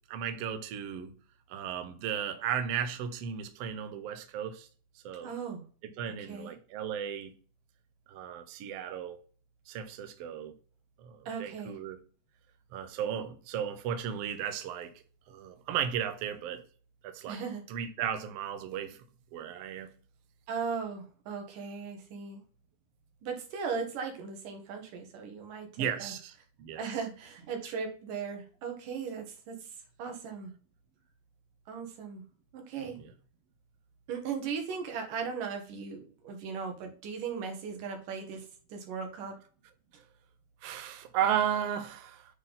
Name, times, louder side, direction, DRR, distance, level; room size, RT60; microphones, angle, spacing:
voice 1, 0.1-1.1 1.5-4.7 5.0-5.3 6.0-7.3 8.1-9.2 9.7-10.5 11.0-12.0 12.7-14.9 15.3-16.6 17.0-17.4 17.7-19.0 19.3-19.9 25.8-26.3 26.6-26.8 40.6-42.2, right 9 dB, 70° right, 1.6 m, -34 dB
voice 2, 5.2-5.6 6.2-6.5 11.3-11.8 17.3-17.6 20.5-22.4 23.2-26.1 26.8-30.5 31.7-32.2 32.5-33.0 34.1-39.4, right 6 dB, 90° right, 3.2 m, -38 dB
8.7 x 3.9 x 3.9 m
omnidirectional pair, 3.7 m